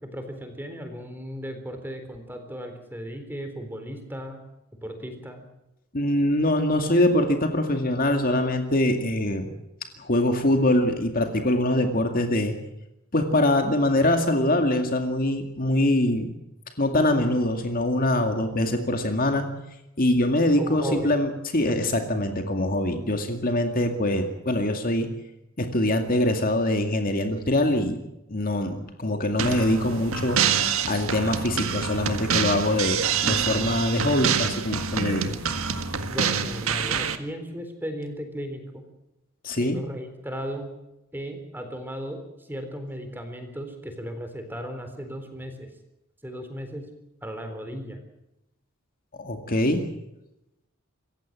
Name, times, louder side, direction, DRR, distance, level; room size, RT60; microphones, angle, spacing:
voice 1, 0.0-4.4 4.8-5.4 20.6-21.1 36.1-38.8 39.6-40.7 41.1-45.7 46.2-46.8 47.2-48.0, equal, 10° right, 6 dB, 3.9 m, -36 dB
voice 2, 5.9-9.5 10.0-12.6 13.1-16.3 16.8-19.5 20.0-25.1 25.6-28.0 28.3-35.3 39.4-39.8 49.2-49.8, left 1 dB, 40° left, 5 dB, 2.3 m, -23 dB
sound 1, 29.4-37.2, right 6 dB, 75° right, 1.7 m, -26 dB
27.0 x 15.5 x 7.5 m, 0.90 s
head